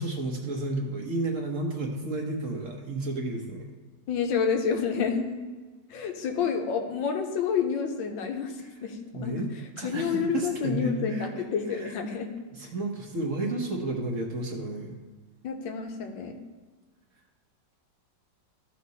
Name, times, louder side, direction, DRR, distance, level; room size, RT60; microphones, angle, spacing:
voice 1, 0.0-3.7 9.1-9.5 9.8-11.3 11.7-11.9 12.5-14.9, right 2 dB, 50° right, 1 dB, 1.3 m, -32 dB
voice 2, 4.1-5.3 5.9-9.4 9.8-12.3 15.4-16.4, left 6 dB, 90° left, 5 dB, 1.6 m, -29 dB
13.5 x 4.8 x 4.1 m, 1.4 s
omnidirectional pair, 2.0 m